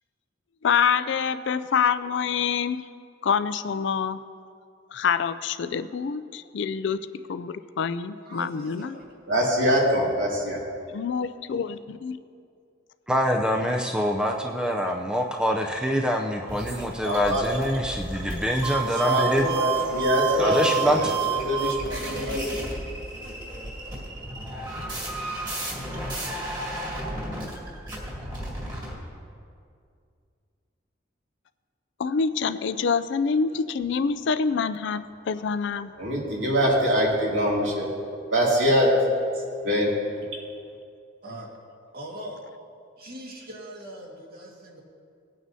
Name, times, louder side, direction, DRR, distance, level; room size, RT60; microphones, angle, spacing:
voice 1, 0.6-2.8 3.2-4.2 4.9-7.0 7.3-9.0 10.9-12.2 32.0-35.9, left 6 dB, 65° left, 12 dB, 0.4 m, -26 dB
voice 2, 8.2-9.0 41.2-41.5 41.9-42.4 43.0-44.8, right 1 dB, 50° right, -1 dB, 1.8 m, -41 dB
voice 3, 9.3-10.6 17.0-17.5 19.0-22.6 36.0-37.9 38.3-38.9 39.6-39.9, equal, 75° right, -4 dB, 2.5 m, -23 dB
voice 4, 13.1-19.5 20.4-21.1, equal, 5° right, 1 dB, 0.5 m, -25 dB
sound 1, 16.5-28.9, right 5 dB, 25° right, 2.3 m, -31 dB
19.0 x 9.3 x 2.7 m, 2.3 s
head